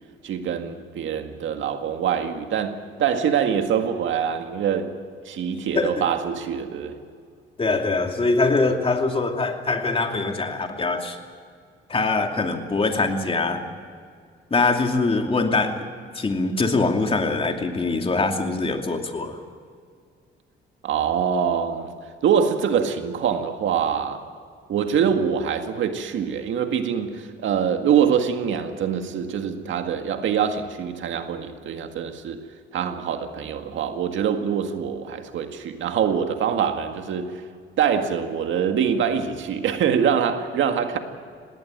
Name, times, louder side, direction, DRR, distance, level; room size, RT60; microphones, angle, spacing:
voice 1, 0.2-5.0 5.3-6.9 20.8-21.9 22.2-24.2 24.7-32.4 32.7-37.4 37.8-41.0, right 7 dB, 75° right, 1.9 m, -24 dB
voice 2, 7.6-11.2 11.9-13.6 14.5-15.8 16.1-19.4, left 3 dB, 30° left, 2.7 m, -23 dB
19.5 x 18.0 x 9.2 m
cardioid pair, 90°, 20 cm